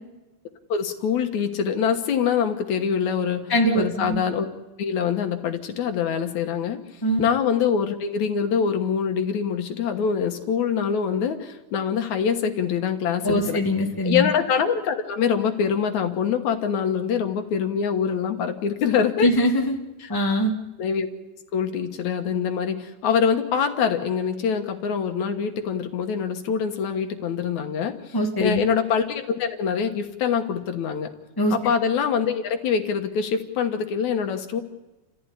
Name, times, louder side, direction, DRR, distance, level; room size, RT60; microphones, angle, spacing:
voice 1, 0.7-4.5 4.8-6.8 7.2-13.6 14.0-19.3 20.0-20.1 20.8-21.1 21.5-31.1 31.5-34.6, left 7 dB, 75° left, 6 dB, 2.7 m, -24 dB
voice 2, 3.5-4.2 7.0-7.2 13.2-14.3 19.2-19.8 20.1-20.5 28.1-28.6 31.4-31.5, equal, 10° left, 1 dB, 1.8 m, -22 dB
29.5 x 15.0 x 9.9 m, 1.1 s
omnidirectional pair, 3.5 m